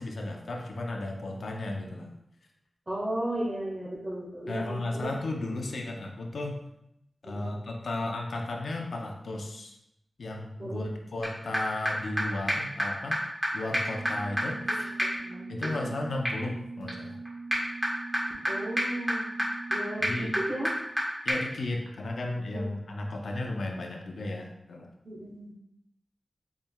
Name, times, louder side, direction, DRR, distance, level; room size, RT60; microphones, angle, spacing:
voice 1, 0.0-2.1 4.5-6.6 7.2-9.7 10.2-13.2 13.5-14.9 15.5-17.2 20.0-20.3 21.2-24.9, left 2 dB, 85° left, 1 dB, 0.5 m, -34 dB
voice 2, 2.9-5.1 7.2-7.5 10.6-10.9 15.2-15.9 18.4-19.4 19.7-20.7 22.5-22.7 25.0-25.5, right 1 dB, 30° right, -5 dB, 1.2 m, -35 dB
sound 1, 11.2-11.3 11.5-11.6 11.8-11.9 12.2-12.3 12.5-12.6 12.8-12.9 13.1-13.2 13.4-13.5 13.7-21.0 21.3-21.4, equal, 10° right, 1.3 m, -31 dB
4.1 x 3.6 x 2.2 m, 0.80 s
wide cardioid pair, 80°, 0 cm